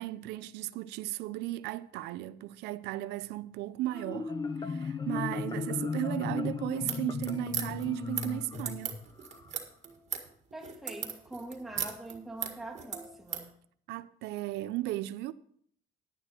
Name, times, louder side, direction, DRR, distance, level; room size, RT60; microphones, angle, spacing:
voice 1, 0.0-8.9 13.9-15.3, right 16 dB, 90° right, 0.5 m, -36 dB
Marimba xylophone, 3.9-9.5, left 5 dB, 25° left, 0.7 m, -35 dB
Mogalyn Sequencer Rebuilt, 6.8-13.5, right 7 dB, 40° right, 1.8 m, -38 dB
voice 2, 10.5-13.6, right 2 dB, ahead, 2.1 m, -44 dB
11.0 x 10.0 x 4.4 m
cardioid pair, 110°, 17 cm